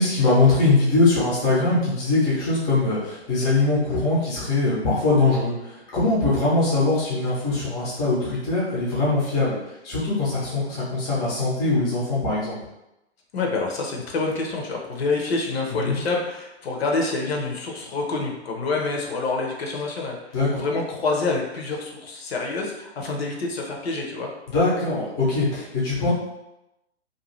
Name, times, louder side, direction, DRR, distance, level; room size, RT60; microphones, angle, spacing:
voice 1, 0.0-9.6 9.8-12.6 15.7-15.9 20.3-20.6 24.5-26.1, left 3 dB, 10° left, -8 dB, 0.5 m, -22 dB
voice 2, 13.3-24.3, left 3 dB, 60° left, 0 dB, 0.8 m, -27 dB
2.6 x 2.3 x 3.0 m, 0.91 s
hypercardioid pair, 145°, 34 cm